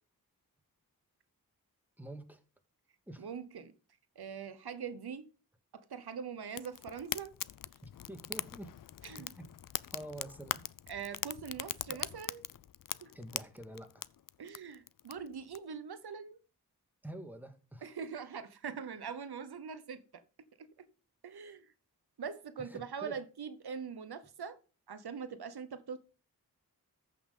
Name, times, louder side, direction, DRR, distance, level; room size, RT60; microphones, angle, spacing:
voice 1, 2.0-2.4 3.1-3.3 7.8-8.7 9.2-9.5 9.9-10.6 11.9-12.0 13.1-14.1 17.0-17.9 22.6-23.2, right 1 dB, 5° right, 1.8 m, -47 dB
voice 2, 3.2-3.7 4.2-5.3 5.7-7.4 9.0-9.3 10.9-12.4 13.0-13.1 14.4-16.4 17.8-20.2 20.6-20.9 21.2-21.7 22.2-24.6 24.9-26.0, right 6 dB, 80° right, 0.9 m, -43 dB
Fire, 6.5-15.6, left 10 dB, 60° left, 0.5 m, -42 dB
14.0 x 5.7 x 3.8 m
wide cardioid pair, 65°, 38 cm